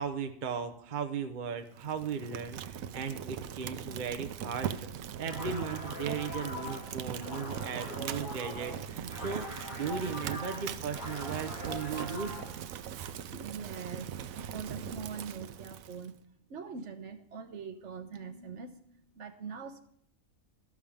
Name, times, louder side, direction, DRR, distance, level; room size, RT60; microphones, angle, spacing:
voice 1, 0.0-4.9 5.2-9.5 9.7-12.3, right 6 dB, 40° right, 6 dB, 1.0 m, -37 dB
Fire, 1.7-16.1, right 9 dB, 85° right, 1.1 m, -40 dB
sound 1, 5.2-12.6, left 1 dB, 85° left, 3.3 m, -43 dB
voice 2, 13.3-16.2 16.5-19.8, right 6 dB, 60° right, 8 dB, 1.3 m, -43 dB
13.0 x 12.5 x 3.6 m, 0.66 s
omnidirectional pair, 1.4 m